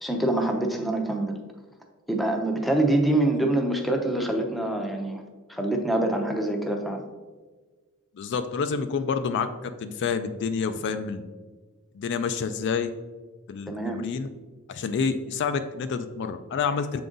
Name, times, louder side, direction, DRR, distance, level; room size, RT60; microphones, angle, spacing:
voice 1, 0.0-1.4 2.1-5.2 5.5-7.0 13.7-14.1, right 1 dB, ahead, 2 dB, 0.6 m, -25 dB
voice 2, 8.2-11.2 11.9-12.9 13.5-14.3 14.7-17.0, left 5 dB, 55° left, 9 dB, 0.3 m, -28 dB
6.8 x 3.8 x 3.8 m, 1.3 s
head